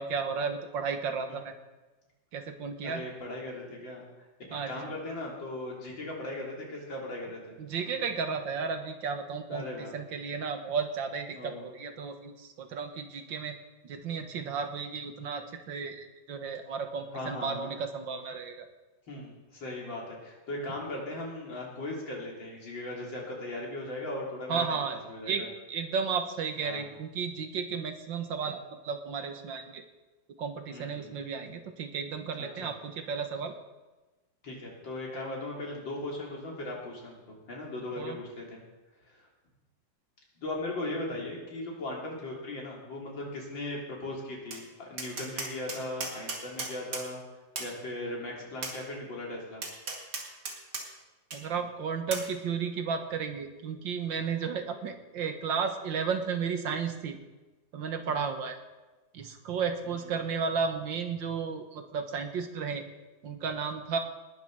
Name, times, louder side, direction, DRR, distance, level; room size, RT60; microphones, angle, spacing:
voice 1, 0.0-1.5 2.3-3.0 4.5-4.9 7.6-9.6 9.9-13.6 13.8-18.7 24.5-25.0 25.3-25.4 25.7-29.8 30.4-33.5 37.9-38.2 51.3-57.2 57.7-58.6 59.1-62.8 63.2-64.0, right 6 dB, 75° right, 7 dB, 2.0 m, -33 dB
voice 2, 2.8-4.3 4.7-7.6 9.5-9.9 11.3-11.7 17.1-17.7 19.1-25.5 26.6-26.9 30.7-31.1 32.4-32.7 34.4-38.6 39.0-39.3 40.4-47.2 47.6-49.6 58.1-58.4 59.8-60.1, left 1 dB, 75° left, -3 dB, 4.3 m, -38 dB
Tap, 44.5-44.6 45.0-47.1 47.6-47.7 48.6-48.8 49.6-50.8 51.3-51.4 52.1-52.3, right 3 dB, 60° right, 2.7 m, -36 dB
19.5 x 7.5 x 6.5 m, 1.2 s
omnidirectional pair, 2.0 m